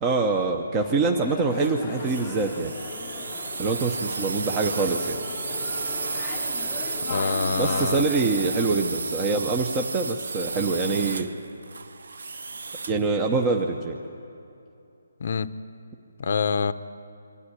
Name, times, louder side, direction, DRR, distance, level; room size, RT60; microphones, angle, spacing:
voice 1, 0.0-2.7 3.6-5.2 7.6-11.3 12.9-14.0, right 3 dB, 15° right, 3 dB, 0.8 m, -25 dB
sound 1, 0.8-8.9, left 8 dB, 15° left, 0.8 m, -39 dB
sound 2, 1.5-13.1, right 4 dB, 75° right, 0.8 m, -32 dB
voice 2, 7.1-8.0 15.2-15.5 16.2-16.7, left 5 dB, 50° left, 14 dB, 0.7 m, -25 dB
23.5 x 13.5 x 9.9 m, 2.7 s
hypercardioid pair, 165°, 0 cm